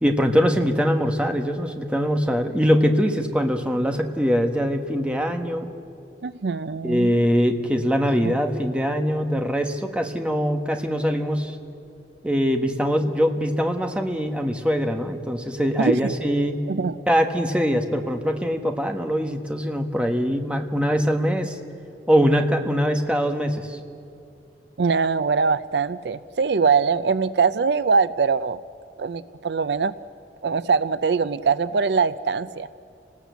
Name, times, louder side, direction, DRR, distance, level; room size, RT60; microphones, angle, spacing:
voice 1, 0.0-5.7 6.8-11.5 12.2-16.6 17.1-21.6 22.1-23.8, equal, 5° right, 4 dB, 1.4 m, -22 dB
voice 2, 6.2-7.1 8.2-8.3 15.8-16.0 16.7-16.9 24.8-28.6 29.0-29.9 30.4-32.7, right 5 dB, 70° right, 15 dB, 0.5 m, -22 dB
29.0 x 19.5 x 8.2 m, 2.6 s
head